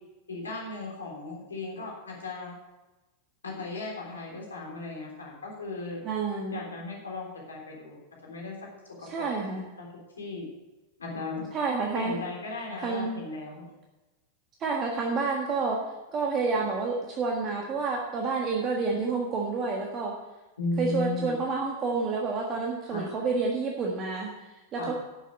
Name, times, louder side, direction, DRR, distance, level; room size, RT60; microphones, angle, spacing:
voice 1, 0.3-2.5 3.4-6.0 6.5-8.7 9.0-9.2 9.8-9.9 10.2-10.5 11.0-11.5 11.9-13.7 20.6-21.4 22.9-23.0 24.8-24.9, left 3 dB, 70° left, -1 dB, 3.4 m, -36 dB
voice 2, 6.0-6.6 9.1-9.6 11.5-12.2 12.8-13.2 14.6-15.8 16.1-20.1 20.8-24.3 24.7-25.0, right 4 dB, 30° right, 0 dB, 1.5 m, -29 dB
11.5 x 7.1 x 6.3 m, 1.1 s
figure-of-eight pair, 90°, 0 cm